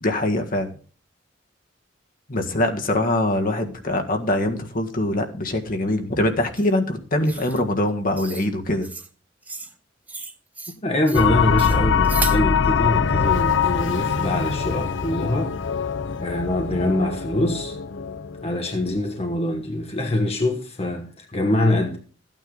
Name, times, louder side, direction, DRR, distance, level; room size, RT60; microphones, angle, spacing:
voice 1, 0.0-0.7 2.3-8.9, left 1 dB, 50° left, 1.7 m, -23 dB
sound 1, 6.6-6.7 7.3-7.6 8.2-8.5 8.8-9.1 9.4-9.8 10.1-10.8 11.1-11.3 11.6-12.4, right 3 dB, 10° right, 0.8 m, -33 dB
voice 2, 10.8-15.9 16.2-17.8 18.4-22.0, left 1 dB, 35° left, 1.3 m, -24 dB
sound 2, 11.1-19.2, left 6 dB, 80° left, 0.7 m, -23 dB
14.0 x 9.1 x 3.9 m
head